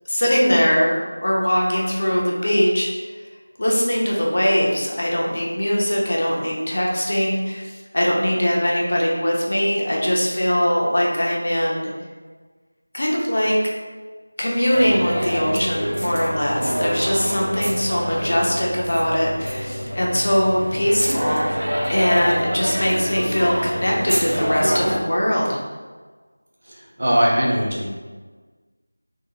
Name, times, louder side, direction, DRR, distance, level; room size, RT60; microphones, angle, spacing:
voice 1, 0.1-3.1 3.6-11.9 12.9-13.6 14.4-25.6, equal, 50° left, -3 dB, 0.7 m, -21 dB
sound 1, 14.7-25.0, equal, 90° right, 0.5 m, -26 dB
voice 2, 26.6-27.9, equal, 55° right, -5 dB, 1.0 m, -20 dB
3.5 x 2.5 x 2.9 m, 1.4 s
figure-of-eight pair, 175°, 0 cm